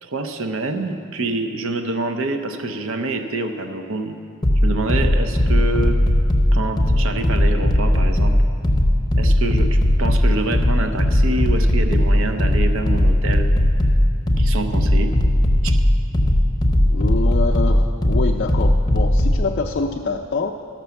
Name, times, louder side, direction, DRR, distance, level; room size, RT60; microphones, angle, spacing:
voice 1, 0.0-4.2 4.6-6.0 6.5-8.4 9.2-13.5 14.4-15.1 15.6-15.8, right 2 dB, 65° right, 6 dB, 0.6 m, -26 dB
sound 1, 4.4-19.4, left 1 dB, 20° left, 0.8 m, -17 dB
voice 2, 16.9-20.5, left 4 dB, 45° left, 0 dB, 0.4 m, -25 dB
13.0 x 6.0 x 6.9 m, 2.4 s
head